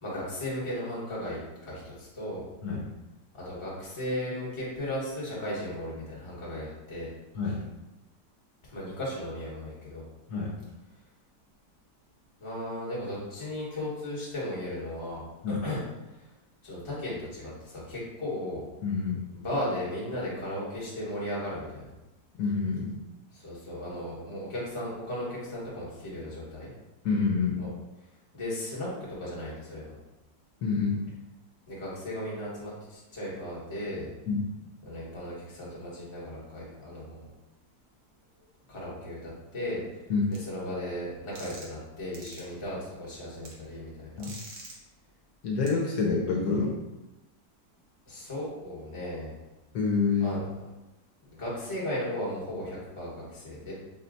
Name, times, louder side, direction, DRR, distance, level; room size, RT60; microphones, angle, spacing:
voice 1, 0.0-2.4 3.3-7.1 8.7-10.1 12.4-15.8 16.2-16.3 16.6-18.7 19.3-21.9 23.3-26.7 27.6-27.7 28.3-28.9 29.2-29.9 31.7-34.1 34.8-37.3 38.7-39.8 40.3-44.3 48.0-49.3 50.2-50.5 51.3-53.7, left 1 dB, 20° left, -7 dB, 1.1 m, -36 dB
voice 2, 18.8-19.2 22.4-22.9 27.0-27.6 30.6-31.0 34.3-34.5 40.1-40.3 44.2-44.4 45.4-46.7 49.7-50.4, left 4 dB, 70° left, -2 dB, 1.1 m, -27 dB
sound 1, 40.3-40.4 41.4-41.8 42.1-42.4 43.4-43.5 44.2-44.7 45.7-45.8, right 2 dB, 55° right, 1.0 m, -44 dB
4.2 x 2.2 x 3.9 m, 1.0 s
omnidirectional pair, 1.8 m